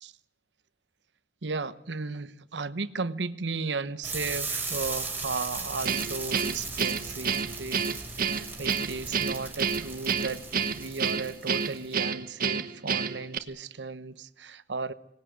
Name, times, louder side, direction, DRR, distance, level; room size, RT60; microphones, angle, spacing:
voice 1, 1.4-7.8 8.2-10.4 10.8-14.9, right 4 dB, 75° right, 13 dB, 1.0 m, -35 dB
sound 1, 4.0-11.9, right 4 dB, 10° right, 3.9 m, -37 dB
Guitar, 5.9-13.4, right 6 dB, 55° right, 1.3 m, -29 dB
25.0 x 19.0 x 9.3 m, 0.87 s
head